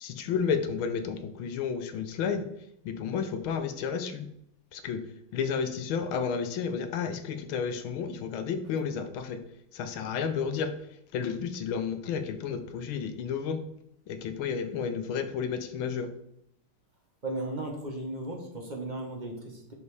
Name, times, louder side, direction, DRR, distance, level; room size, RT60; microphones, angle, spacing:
voice 1, 0.0-2.4 2.8-4.3 4.7-5.0 5.3-9.4 9.7-10.7 11.1-13.6 14.2-16.1, left 6 dB, 75° left, 8 dB, 1.5 m, -31 dB
voice 2, 17.2-19.7, right 1 dB, 35° right, 0 dB, 0.7 m, -36 dB
5.4 x 5.2 x 4.8 m, 0.74 s
omnidirectional pair, 2.4 m